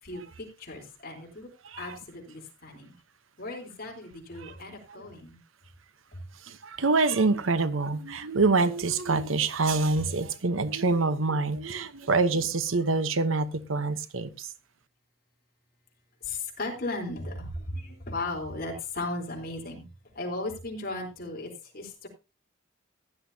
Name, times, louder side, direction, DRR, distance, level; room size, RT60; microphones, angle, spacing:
voice 1, 0.0-1.5 1.8-2.9 3.4-5.4 6.1-6.2 12.3-12.5 16.2-19.8 20.1-22.1, left 2 dB, 50° left, 3.9 m, -36 dB
voice 2, 6.4-14.5, right 3 dB, 85° right, 1.0 m, -26 dB
15.5 x 11.0 x 2.8 m
head